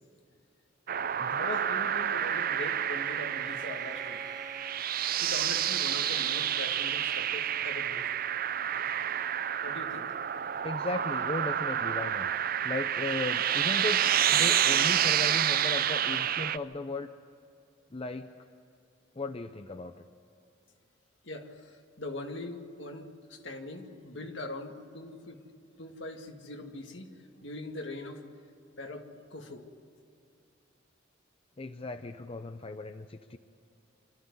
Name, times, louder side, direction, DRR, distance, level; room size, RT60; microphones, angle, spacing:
sound 1, 0.9-16.6, right 10 dB, 50° right, 0.5 m, -29 dB
voice 1, 1.3-4.2 5.2-8.1 9.6-10.1 21.2-25.4 25.8-27.1 27.4-28.2 28.8-29.6, left 2 dB, 65° left, 3 dB, 2.1 m, -41 dB
Bowed string instrument, 1.7-4.9, right 3 dB, 20° right, 0.9 m, -49 dB
voice 2, 10.6-17.1 17.9-18.3 19.2-20.1 31.6-33.4, left 2 dB, 30° left, 8 dB, 0.6 m, -36 dB
25.5 x 13.5 x 9.6 m, 2.5 s
head